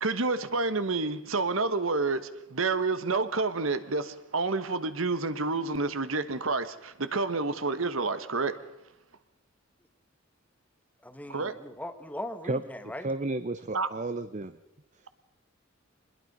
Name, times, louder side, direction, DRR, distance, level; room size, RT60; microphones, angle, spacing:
voice 1, 0.0-8.6 11.3-11.5 13.7-13.9, right 3 dB, 75° right, 12 dB, 1.4 m, -29 dB
voice 2, 11.0-13.1, left 1 dB, 5° left, 9 dB, 1.4 m, -39 dB
voice 3, 13.0-14.6, right 2 dB, 35° right, 11 dB, 0.7 m, -32 dB
25.0 x 21.0 x 5.5 m, 0.95 s
head